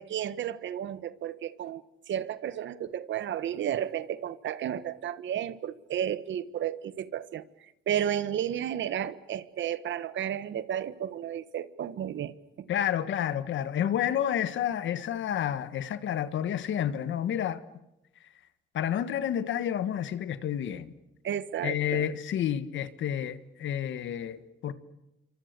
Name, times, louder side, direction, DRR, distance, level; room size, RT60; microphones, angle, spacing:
voice 1, 0.0-12.7 21.2-22.1, right 10 dB, 70° right, 1.4 m, -33 dB
voice 2, 12.7-17.6 18.7-20.9 21.6-24.7, left 10 dB, 70° left, 1.6 m, -30 dB
28.0 x 24.5 x 6.8 m
cardioid pair, 90°, 20 cm